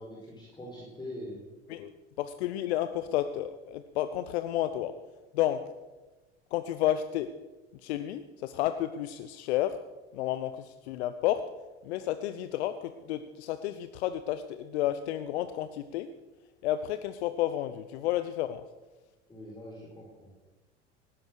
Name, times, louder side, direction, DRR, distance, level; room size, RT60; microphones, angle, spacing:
voice 1, 0.0-1.4 19.3-20.4, left 1 dB, 10° left, -5 dB, 5.2 m, -43 dB
voice 2, 2.2-5.0 5.3-5.6 6.5-7.3 7.8-9.8 10.1-11.5 11.8-16.1 16.6-18.6, left 12 dB, 65° left, 11 dB, 0.8 m, -31 dB
18.5 x 10.5 x 6.6 m, 1.2 s
figure-of-eight pair, 70°, 35 cm